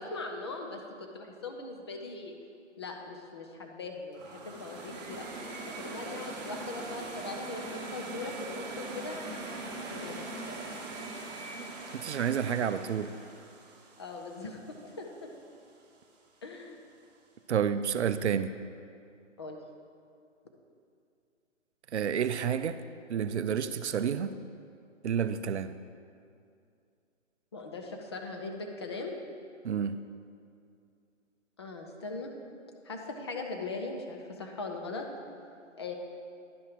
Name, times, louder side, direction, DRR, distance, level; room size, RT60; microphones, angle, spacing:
voice 1, 0.0-2.3 2.8-5.3 5.6-9.4 9.7-10.7 14.0-15.3 16.4-16.8 19.4-19.6 27.5-29.1 31.6-32.3 32.8-35.1 35.8-36.0, left 3 dB, 20° left, 2 dB, 0.5 m, -40 dB
sound 1, 4.1-15.1, right 3 dB, 35° right, 1.3 m, -42 dB
voice 2, 11.6-13.1 17.5-18.5 21.9-22.8 23.1-24.4 25.0-25.7 29.6-30.0, right 8 dB, 65° right, 12 dB, 0.5 m, -30 dB
10.5 x 5.4 x 4.9 m, 2.4 s
figure-of-eight pair, 140°, 37 cm